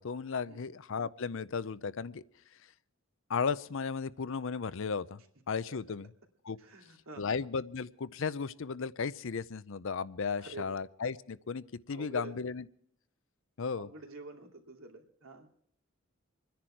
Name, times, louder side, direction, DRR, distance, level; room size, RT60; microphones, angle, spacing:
voice 1, 0.0-2.2 3.3-5.2 5.5-6.1 6.4-6.6 7.2-12.6 13.6-13.9, left 5 dB, 65° left, 17 dB, 0.6 m, -35 dB
voice 2, 6.6-7.2 10.3-10.6 11.9-12.4 13.7-15.5, right 2 dB, 80° right, 2 dB, 2.6 m, -47 dB
25.5 x 10.5 x 4.5 m, 0.67 s
head